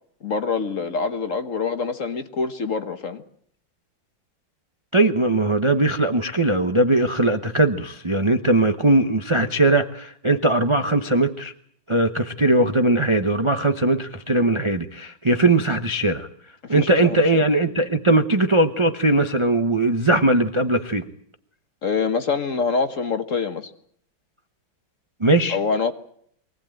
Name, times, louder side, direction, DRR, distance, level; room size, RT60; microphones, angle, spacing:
voice 1, 0.2-3.2 16.7-17.4 21.8-23.7 25.5-25.9, left 5 dB, 45° left, 9 dB, 1.3 m, -25 dB
voice 2, 4.9-11.5 11.9-16.3 16.7-21.1 25.2-25.6, right 2 dB, 25° right, 7 dB, 0.6 m, -20 dB
23.5 x 17.5 x 9.1 m, 0.66 s
omnidirectional pair, 2.2 m